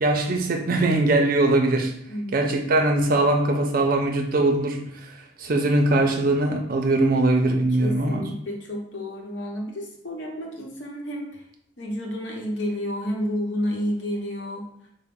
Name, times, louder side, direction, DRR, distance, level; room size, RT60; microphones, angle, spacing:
voice 1, 0.0-1.9 2.3-4.8 5.1-8.3, right 2 dB, 50° right, 3 dB, 0.5 m, -21 dB
voice 2, 2.1-2.5 7.8-11.4 11.8-14.7, equal, 75° left, 0 dB, 0.9 m, -30 dB
3.9 x 2.1 x 3.5 m, 0.73 s
head